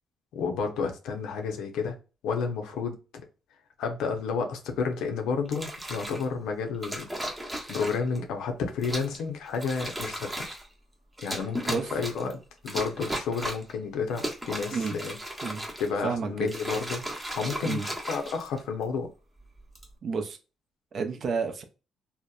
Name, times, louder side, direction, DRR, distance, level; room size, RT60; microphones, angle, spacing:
voice 1, 0.3-2.0 2.2-3.0 3.8-7.1 7.5-10.3 11.2-15.2 15.8-17.0 17.3-19.1, left 5 dB, 90° left, 0.5 m, -31 dB
sound 1, 5.4-6.2 6.8-8.2 8.8-9.2 9.5-10.7 11.2-12.3 12.7-13.7 14.1-16.0 16.4-18.8 19.6-19.9, equal, 10° right, 0.7 m, -36 dB
voice 2, 16.0-16.5 17.6-17.9 20.0-20.4 20.9-21.6, right 5 dB, 55° right, 0.5 m, -30 dB
2.7 x 2.1 x 2.3 m
cardioid pair, 90°, 0 cm